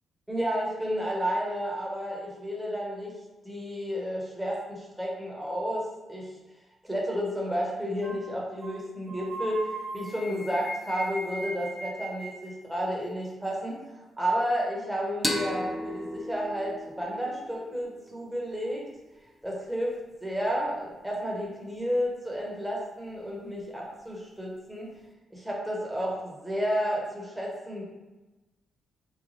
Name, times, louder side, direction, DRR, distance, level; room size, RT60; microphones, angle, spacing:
voice 1, 0.3-3.1 3.4-6.3 6.8-13.8 14.2-18.9 19.4-24.9 25.3-27.8, equal, 10° right, -3 dB, 1.1 m, -31 dB
sound 1, 8.0-8.3 8.6-8.8 9.1-12.5, right 1 dB, 35° right, 1.1 m, -38 dB
sound 2, 15.2-18.6, left 1 dB, 10° left, 0.5 m, -35 dB
3.2 x 2.1 x 4.0 m, 1.1 s
cardioid pair, 70°, 0 cm